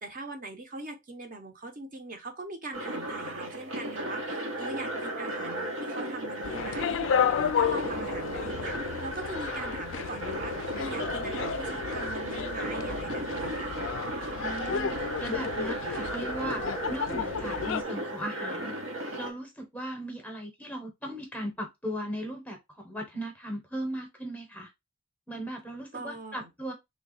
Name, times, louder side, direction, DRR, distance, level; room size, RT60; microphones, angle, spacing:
voice 1, 0.0-13.8 25.9-26.5, right 2 dB, 40° right, 0.8 m, -41 dB
sound 1, 2.7-19.3, right 1 dB, 75° right, 0.9 m, -35 dB
sound 2, 6.4-17.8, left 7 dB, 65° left, 0.3 m, -32 dB
voice 2, 14.3-16.6 16.9-18.7 19.2-24.7 25.3-26.7, right 1 dB, 10° left, 0.8 m, -37 dB
3.2 x 2.3 x 3.9 m
head